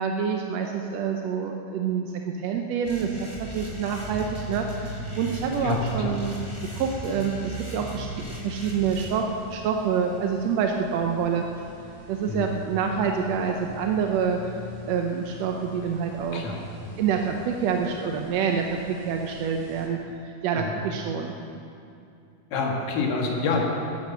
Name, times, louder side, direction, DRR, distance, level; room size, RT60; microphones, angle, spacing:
voice 1, 0.0-6.4 6.7-8.1 8.4-11.4 12.1-14.5 14.9-16.4 17.0-21.4, right 6 dB, 75° right, 3 dB, 1.6 m, -27 dB
sound 1, 2.8-9.1, equal, 10° left, 2.6 m, -37 dB
sound 2, 3.5-19.8, left 1 dB, 10° right, 4.1 m, -45 dB
voice 2, 5.6-6.2 12.3-12.6 16.0-17.0 20.5-20.7 22.5-23.6, left 3 dB, 85° left, 0 dB, 3.3 m, -28 dB
13.0 x 10.5 x 6.7 m, 2.6 s
omnidirectional pair, 3.8 m